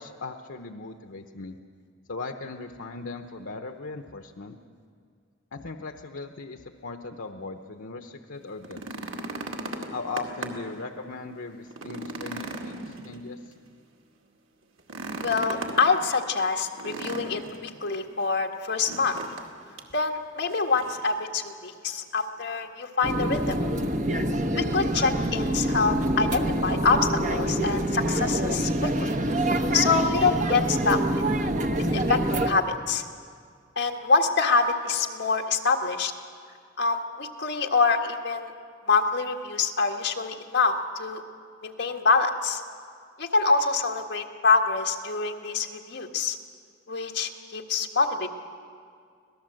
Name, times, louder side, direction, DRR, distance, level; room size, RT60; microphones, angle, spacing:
voice 1, 0.0-1.6 2.1-4.6 5.5-9.0 9.9-13.5, left 3 dB, 75° left, 6 dB, 0.9 m, -38 dB
sound 1, 8.5-10.7 11.2-11.3 11.7-13.6 14.8-15.9 16.8-17.7 18.8-19.5 19.8-19.9 20.5-21.1 22.2-22.3, right 2 dB, 85° right, 2.2 m, -36 dB
voice 2, 15.2-19.2 19.9-23.5 24.6-29.1 29.7-31.4 31.8-33.0 33.7-36.1 36.8-38.5 38.9-41.2 41.6-42.6 43.2-46.4 46.9-48.3, left 4 dB, 55° left, 3 dB, 1.7 m, -25 dB
sound 2, 23.0-32.5, right 1 dB, 40° right, 1.0 m, -26 dB
25.5 x 17.5 x 7.7 m, 2.2 s
head